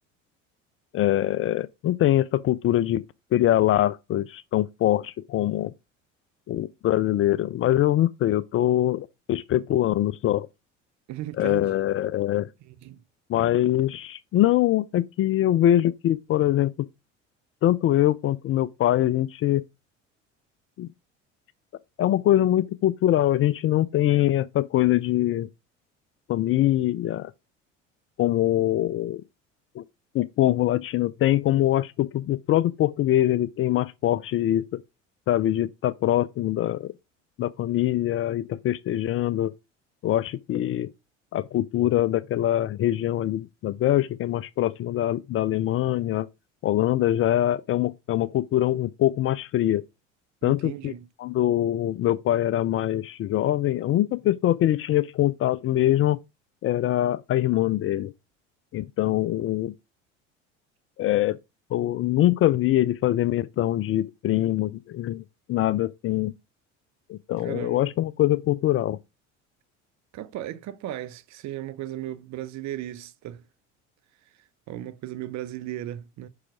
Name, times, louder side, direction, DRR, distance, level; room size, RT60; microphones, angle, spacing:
voice 1, 0.9-3.0 3.3-5.7 6.5-10.5 11.4-12.5 13.3-16.7 17.6-19.6 20.8-20.9 22.0-25.5 26.3-27.3 28.2-29.2 29.8-29.9 30.1-34.7 35.3-36.9 37.4-39.5 40.0-40.9 41.3-46.3 46.6-49.8 50.4-50.9 51.2-56.2 56.6-58.1 58.7-59.7 61.0-61.4 61.7-65.2 65.5-66.3 67.1-69.0, left 13 dB, 35° left, 0.4 m, -23 dB
voice 2, 11.1-11.7 12.6-13.0 50.4-51.1 67.4-67.9 70.1-73.4 74.7-76.3, right 13 dB, 45° right, 0.8 m, -36 dB
5.7 x 4.9 x 4.9 m
hypercardioid pair, 65°, 38 cm